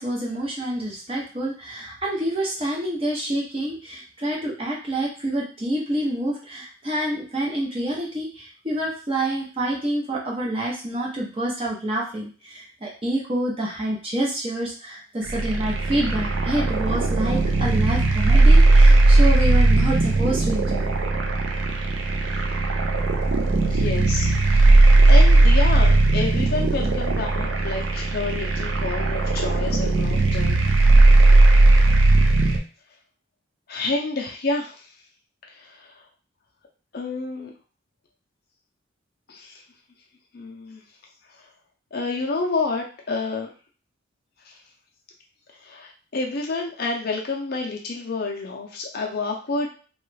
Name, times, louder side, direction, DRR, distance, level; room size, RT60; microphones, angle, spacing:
voice 1, 0.0-20.9, right 1 dB, 25° right, -3 dB, 0.6 m, -27 dB
sound 1, 15.3-32.6, right 2 dB, 70° right, 0.5 m, -17 dB
voice 2, 23.6-24.7 25.1-30.6 33.7-34.9 35.4-36.0 36.9-37.5 39.3-39.6 40.3-40.8 41.9-43.5 44.5-44.6 45.6-49.7, left 3 dB, 50° left, 0 dB, 0.5 m, -29 dB
3.0 x 2.3 x 3.2 m, 0.38 s
head